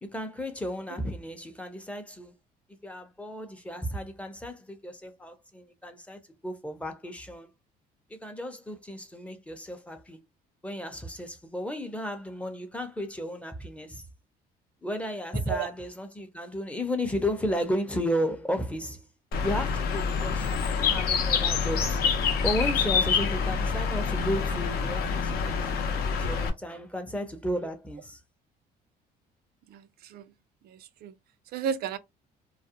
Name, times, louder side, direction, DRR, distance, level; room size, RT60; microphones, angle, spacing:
voice 1, 0.0-2.4 2.8-7.5 8.1-10.2 10.6-14.1 14.8-19.1 19.4-22.0 22.4-28.2, equal, 5° left, 0.5 m, -34 dB
Bird, 19.3-26.5, left 5 dB, 65° left, 0.6 m, -27 dB
voice 2, 29.7-30.2 30.6-31.1 31.5-32.0, right 7 dB, 65° right, 0.4 m, -33 dB
2.3 x 2.1 x 2.7 m
cardioid pair, 110°, 17 cm